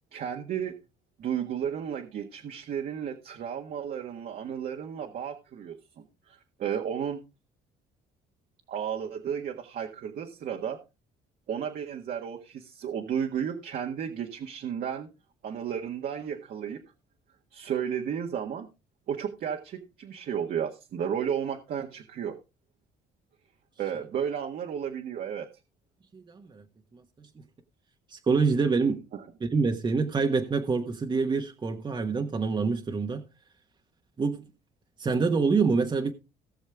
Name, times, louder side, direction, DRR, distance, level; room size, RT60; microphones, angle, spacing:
voice 1, 0.1-0.8 1.2-7.2 8.7-10.8 11.5-15.1 15.4-16.8 17.5-18.7 19.1-22.4 23.8-25.5, right 8 dB, 60° right, 1.7 m, -33 dB
voice 2, 26.1-26.6 26.9-27.3 28.1-29.0 29.4-33.2 34.2-34.4 35.0-36.1, right 4 dB, 25° right, 1.3 m, -26 dB
18.5 x 6.3 x 3.5 m
cardioid pair, 110°, 17 cm